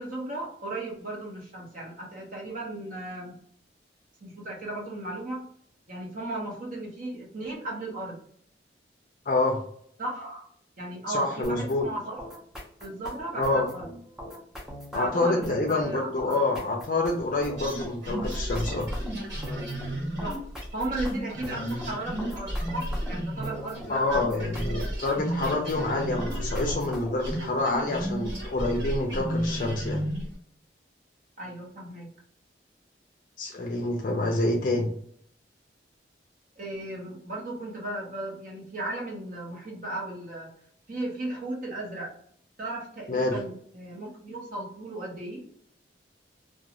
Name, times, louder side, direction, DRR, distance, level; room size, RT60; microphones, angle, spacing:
voice 1, 0.0-3.4 4.2-5.4 5.9-8.2 10.0-10.5 10.8-12.3 12.8-13.9 14.9-16.3 20.2-20.4 20.7-24.9 25.3-25.4 31.4-32.1 36.6-40.5 40.9-42.1 42.6-45.4, right 2 dB, 45° right, -3 dB, 0.8 m, -36 dB
voice 2, 9.3-9.6 11.1-11.8 13.3-13.7 14.9-18.9 23.9-30.0 33.4-34.9 43.1-43.4, left 2 dB, 50° left, 0 dB, 0.4 m, -27 dB
sound 1, 11.4-27.3, equal, 5° right, 0.5 m, -41 dB
sound 2, 17.6-23.9 24.1-30.3, equal, 90° right, 1.3 m, -33 dB
2.4 x 2.2 x 2.9 m, 0.62 s
head